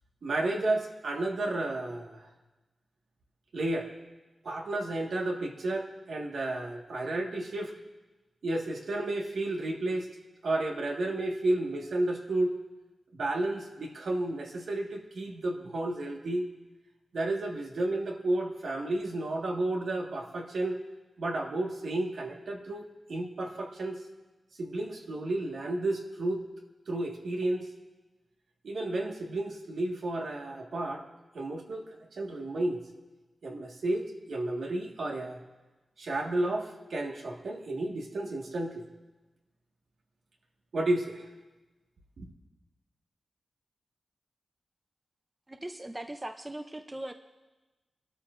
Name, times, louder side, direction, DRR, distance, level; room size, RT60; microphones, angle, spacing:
voice 1, 0.2-2.3 3.5-3.9 4.4-7.7 8.4-10.1 10.4-12.6 13.1-16.5 17.1-20.8 21.2-24.0 24.6-26.4 26.9-27.7 28.6-31.0 31.3-31.8 32.1-32.8 33.4-35.4 36.0-38.9 40.7-41.3 42.2-42.3, right 2 dB, 70° right, 1 dB, 1.6 m, -32 dB
voice 2, 45.5-47.1, right 1 dB, 15° right, 6 dB, 0.5 m, -39 dB
24.5 x 13.0 x 2.5 m, 1.2 s
wide cardioid pair, 150°, 0 cm